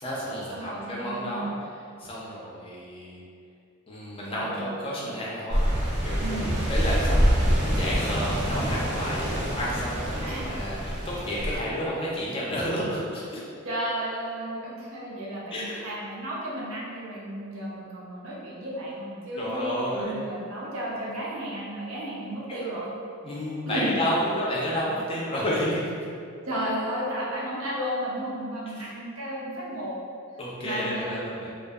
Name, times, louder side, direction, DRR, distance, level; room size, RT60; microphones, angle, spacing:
voice 1, 0.0-1.5 2.0-3.2 3.9-5.6 6.0-13.4 15.5-15.8 19.4-20.2 22.5-22.6 23.2-25.9 30.4-31.5, equal, 25° left, -5 dB, 0.4 m, -31 dB
voice 2, 0.5-1.5 4.3-5.1 6.2-6.5 10.2-10.5 11.5-11.6 13.6-22.9 23.7-23.9 26.5-29.9 30.6-31.3, right 1 dB, 80° right, -6 dB, 0.6 m, -33 dB
sound 1, 5.5-11.6, equal, 35° right, 0.5 m, -26 dB
2.6 x 2.2 x 2.3 m, 2.4 s
head